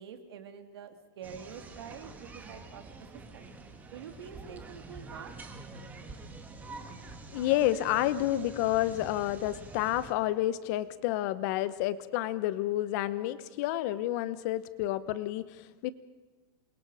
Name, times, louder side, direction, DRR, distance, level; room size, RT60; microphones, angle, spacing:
voice 1, 0.0-2.8 3.3-3.5 3.9-5.3, right 7 dB, 75° right, 7 dB, 2.8 m, -46 dB
sound 1, 1.2-10.1, right 3 dB, 10° right, 1.8 m, -47 dB
voice 2, 7.3-15.9, left 14 dB, 40° left, 15 dB, 1.0 m, -30 dB
28.0 x 23.0 x 5.0 m, 1.2 s
supercardioid pair, 160°, 13 cm